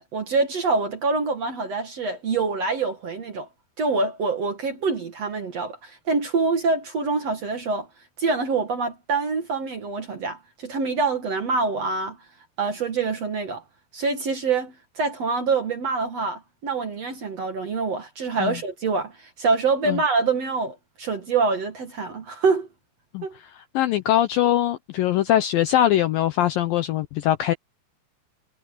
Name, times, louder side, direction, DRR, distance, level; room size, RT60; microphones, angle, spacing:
voice 1, 0.0-3.5 3.8-7.9 8.2-12.2 12.6-13.6 13.9-22.7 23.2-23.4, right 4 dB, 50° right, 2.2 m, -25 dB
voice 2, 23.7-27.5, left 12 dB, 80° left, 2.1 m, -22 dB
omnidirectional pair, 4.9 m